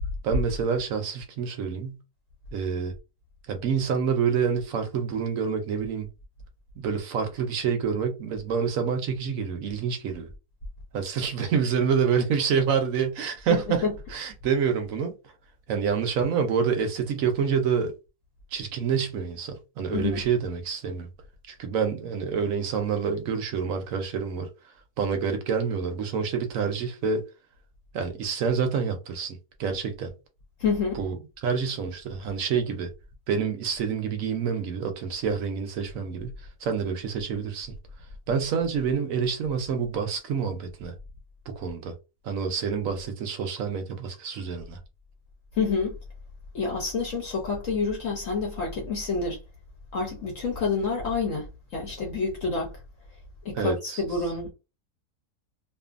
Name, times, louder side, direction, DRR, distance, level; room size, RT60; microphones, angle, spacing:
voice 1, 0.2-2.0 2.5-2.9 3.5-6.1 6.8-10.3 10.9-13.8 14.1-15.1 15.7-17.9 18.5-21.1 21.5-24.5 25.0-27.2 27.9-30.1 30.9-31.2 31.4-32.9 33.3-37.7 38.3-40.9 41.5-41.9 42.2-44.8 53.5-54.0, right 6 dB, 70° right, 0.9 m, -27 dB
voice 2, 13.5-13.9 19.9-20.2 30.6-31.0 45.5-45.9 46.5-49.4 49.9-52.7 53.4-54.5, left 4 dB, 60° left, 1.0 m, -28 dB
2.6 x 2.5 x 2.4 m
omnidirectional pair, 1.7 m